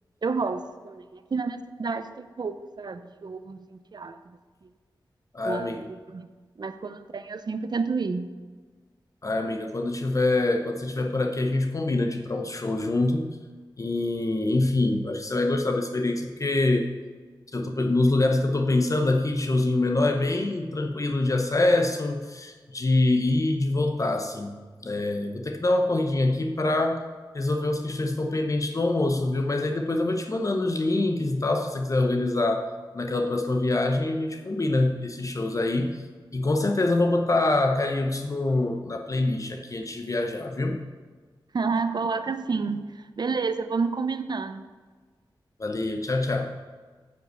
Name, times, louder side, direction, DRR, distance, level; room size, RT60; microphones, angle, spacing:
voice 1, 0.2-4.7 5.4-6.3 6.6-8.4 41.5-44.6, right 4 dB, 55° right, 11 dB, 0.6 m, -30 dB
voice 2, 5.3-5.8 9.2-13.3 13.8-16.9 17.5-24.6 24.8-27.0 27.3-36.0 36.3-40.8 45.6-46.5, left 2 dB, 40° left, 4 dB, 0.7 m, -25 dB
9.5 x 5.3 x 8.0 m, 1.4 s
wide cardioid pair, 100°, 8 cm